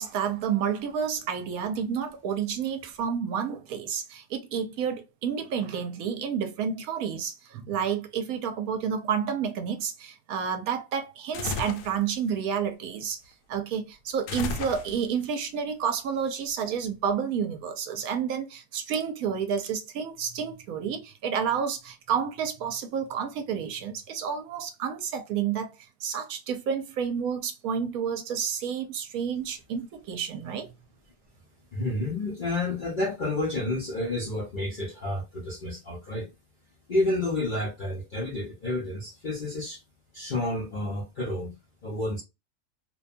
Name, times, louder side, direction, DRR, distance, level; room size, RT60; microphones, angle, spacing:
voice 1, 0.0-13.2 13.5-25.8 26.0-30.7, right 7 dB, 70° right, 0.9 m, -30 dB
sound 1, 11.3-12.0 14.3-15.2, left 4 dB, 80° left, 1.1 m, -33 dB
voice 2, 31.7-36.3 36.9-39.8 40.1-41.6 41.8-42.2, left 2 dB, 55° left, 0.5 m, -30 dB
2.7 x 2.2 x 2.5 m
omnidirectional pair, 1.7 m